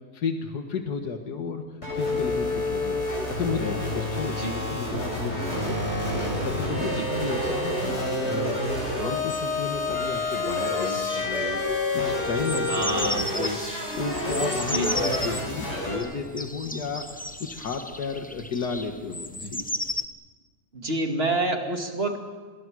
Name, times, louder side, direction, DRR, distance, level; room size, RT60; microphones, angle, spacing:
voice 1, 0.1-1.6 1.9-3.0 3.3-5.9 6.4-11.6 11.9-13.6 14.0-17.1 17.4-19.6, left 5 dB, 85° left, 5 dB, 2.1 m, -33 dB
sound 1, 1.8-16.0, left 1 dB, 45° left, 8.5 m, -28 dB
voice 2, 4.2-4.5 6.9-7.1 12.7-13.2 14.7-15.0 20.7-22.2, right 2 dB, 40° right, 3 dB, 2.6 m, -27 dB
sound 2, 9.3-20.1, left 1 dB, 5° left, 0.7 m, -35 dB
27.5 x 21.5 x 6.3 m, 1.5 s
omnidirectional pair, 1.7 m